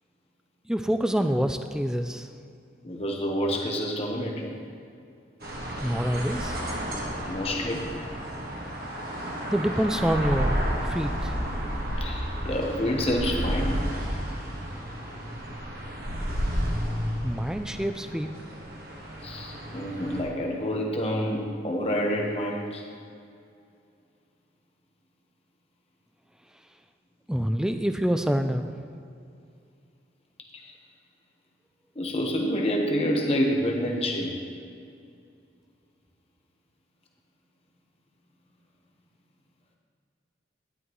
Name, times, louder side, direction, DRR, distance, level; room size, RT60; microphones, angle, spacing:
voice 1, 0.7-2.3 5.8-6.6 9.5-11.4 17.2-18.3 27.3-28.7, equal, 5° right, 7 dB, 0.3 m, -26 dB
voice 2, 2.8-4.6 7.2-7.9 12.0-13.8 19.2-22.8 30.5-30.7 31.9-34.4, equal, 35° left, 0 dB, 1.1 m, -28 dB
sound 1, 5.4-20.2, equal, 55° right, 1.5 m, -31 dB
11.0 x 11.0 x 3.1 m, 2.5 s
head